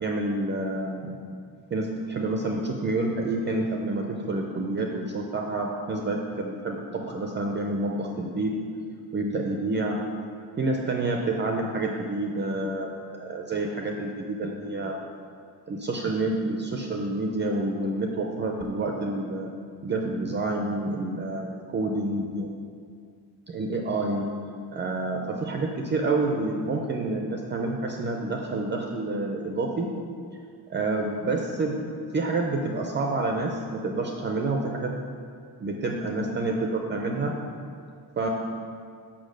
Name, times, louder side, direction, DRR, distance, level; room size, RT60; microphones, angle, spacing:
voice 1, 0.0-1.2 1.7-8.5 9.1-10.0 10.6-12.9 13.2-15.0 15.7-19.5 19.8-22.5 23.5-24.3 24.7-29.9 30.7-34.9 35.6-37.3 38.2-38.3, right 2 dB, 30° right, 1 dB, 0.5 m, -28 dB
6.5 x 5.6 x 6.4 m, 2.2 s
cardioid pair, 165°, 40 cm